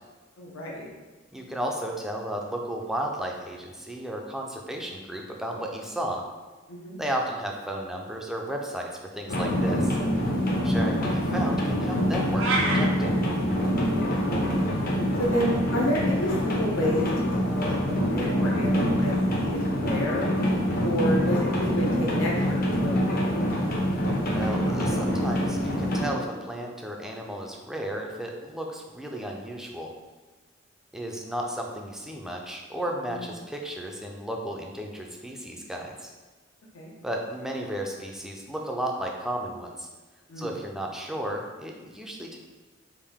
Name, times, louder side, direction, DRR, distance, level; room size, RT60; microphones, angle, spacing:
voice 1, 0.4-0.9 6.7-7.0 10.6-10.8 13.8-14.2 15.2-17.1 17.4-20.3 20.8-22.9 23.2-23.5 33.1-33.2 36.7-36.9 40.3-40.5, equal, 85° left, -2 dB, 0.7 m, -30 dB
voice 2, 1.3-6.2 7.0-10.0 10.6-13.1 24.3-29.9 30.9-36.1 37.0-39.9 40.4-42.4, right 1 dB, ahead, 0 dB, 0.4 m, -34 dB
sound 1, 9.3-26.1, equal, 50° left, 0.7 m, -25 dB
sound 2, 12.3-12.8, right 3 dB, 70° right, 0.5 m, -25 dB
3.5 x 2.5 x 3.5 m, 1.3 s
head